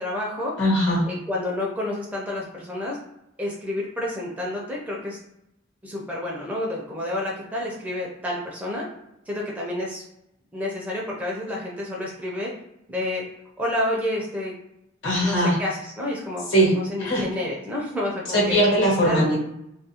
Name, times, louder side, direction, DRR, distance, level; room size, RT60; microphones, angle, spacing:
voice 1, 0.0-0.5 1.0-3.0 3.4-5.2 5.8-8.9 9.3-10.0 10.5-12.5 12.9-13.2 13.6-14.5 15.2-16.5 16.7-18.6 19.0-19.2, left 1 dB, 5° right, -3 dB, 0.4 m, -29 dB
voice 2, 0.6-1.0 15.0-15.6 16.5-16.7 17.0-17.3 18.3-19.4, equal, 60° left, -4 dB, 1.1 m, -20 dB
2.3 x 2.2 x 2.8 m, 0.82 s
head